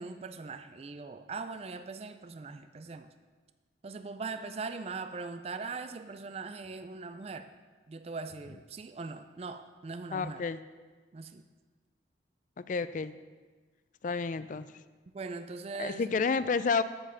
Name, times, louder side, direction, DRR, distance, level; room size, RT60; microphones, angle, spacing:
voice 1, 0.0-3.1 3.8-7.5 7.9-10.4 11.1-11.4 15.1-16.2, right 4 dB, 35° right, 10 dB, 0.4 m, -40 dB
voice 2, 10.1-10.6 12.6-13.2 14.0-14.7 15.8-16.8, left 5 dB, 45° left, 13 dB, 0.3 m, -30 dB
8.5 x 5.4 x 7.0 m, 1.4 s
head